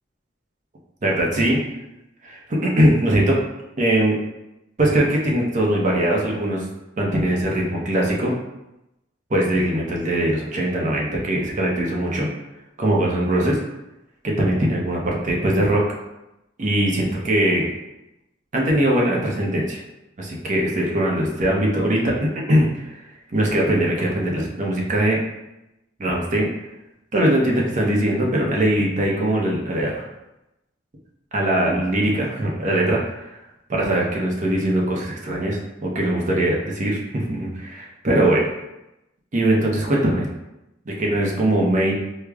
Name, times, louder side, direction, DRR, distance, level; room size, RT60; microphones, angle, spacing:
voice 1, 1.0-1.6 2.2-3.4 3.8-4.2 4.8-6.7 7.0-8.3 9.3-12.3 12.8-13.6 14.2-15.8 16.6-17.7 18.5-19.8 20.2-23.0 23.3-25.2 26.0-26.5 27.1-30.1 31.3-33.4 33.7-38.5 39.3-40.3 40.9-41.9, right 1 dB, 40° right, -2 dB, 0.6 m, -21 dB
4.7 x 2.0 x 2.3 m, 0.93 s
head